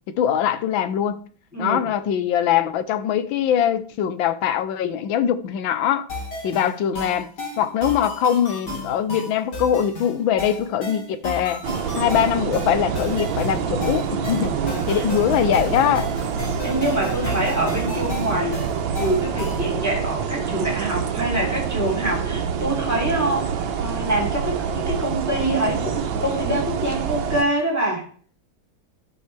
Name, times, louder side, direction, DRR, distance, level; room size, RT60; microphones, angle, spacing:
voice 1, 0.1-1.2 1.6-6.1 6.4-7.3 7.6-11.6 12.0-16.1, left 9 dB, 75° left, 1.4 m, -22 dB
sound 1, 6.1-19.7, left 1 dB, 55° left, 3.3 m, -33 dB
sound 2, 11.6-27.4, right 7 dB, 75° right, 1.5 m, -26 dB
voice 2, 14.6-15.0 16.6-18.6 19.0-28.1, right 1 dB, 10° right, 3.1 m, -25 dB
13.0 x 5.6 x 3.3 m
omnidirectional pair, 2.2 m